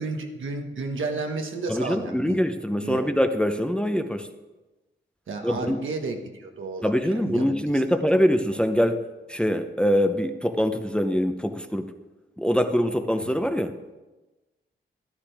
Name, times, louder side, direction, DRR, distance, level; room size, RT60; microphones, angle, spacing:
voice 1, 0.0-2.4 2.8-3.1 5.3-7.5 13.2-13.3, right 3 dB, 85° right, 3 dB, 1.4 m, -32 dB
voice 2, 1.7-4.3 5.4-5.8 6.8-11.9 12.4-13.8, equal, 5° left, 7 dB, 0.7 m, -24 dB
13.5 x 11.0 x 3.4 m, 1.1 s
wide cardioid pair, 85°, 20 cm